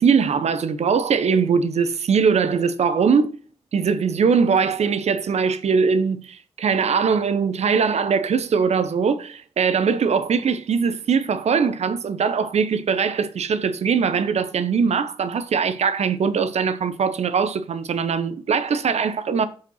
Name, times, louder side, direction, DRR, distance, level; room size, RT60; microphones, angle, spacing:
voice 1, 0.0-3.3 3.7-19.5, right 6 dB, 80° right, 0.7 m, -21 dB
5.4 x 5.0 x 6.3 m
cardioid pair, 75°, 11 cm